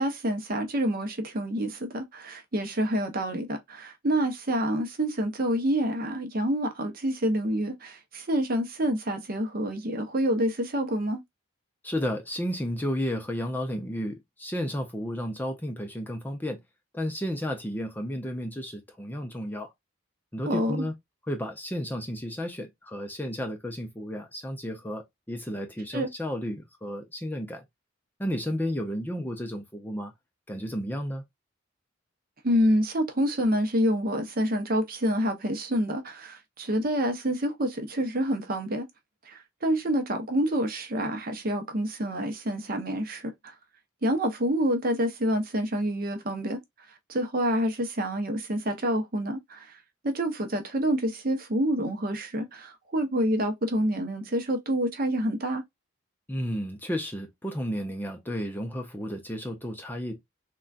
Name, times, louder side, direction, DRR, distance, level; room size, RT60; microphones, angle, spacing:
voice 1, 0.0-11.2 20.5-20.9 25.9-26.1 32.4-38.9 39.3-43.5 44.0-46.6 47.1-49.8 50.0-55.6, equal, 45° right, 0.7 m, -27 dB
voice 2, 11.8-16.6 16.9-19.7 20.3-20.9 21.3-27.6 28.2-30.1 30.5-31.2 56.3-60.2, equal, 10° left, 0.4 m, -32 dB
3.7 x 2.2 x 2.3 m
head